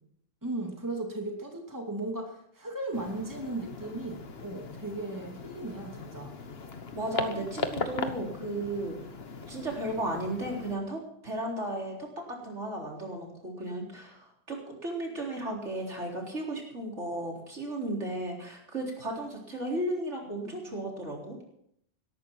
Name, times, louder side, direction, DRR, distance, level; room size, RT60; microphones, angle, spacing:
voice 1, 0.4-6.3, right 2 dB, 15° right, 1 dB, 2.6 m, -36 dB
sound 1, 2.9-10.8, left 4 dB, 60° left, 1.5 m, -39 dB
voice 2, 6.9-9.0 9.5-21.4, right 1 dB, 80° right, -1 dB, 4.3 m, -35 dB
17.5 x 13.5 x 4.6 m, 0.70 s
omnidirectional pair, 1.2 m